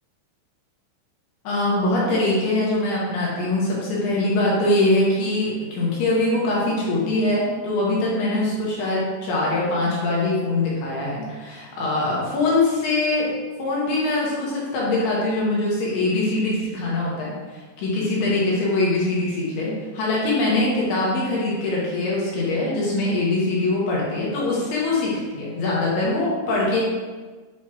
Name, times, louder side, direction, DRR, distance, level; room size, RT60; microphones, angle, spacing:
voice 1, 1.4-13.3 13.6-17.3 17.8-26.8, left 2 dB, 65° left, -5 dB, 2.9 m, -23 dB
8.5 x 5.5 x 3.1 m, 1.4 s
omnidirectional pair, 5.8 m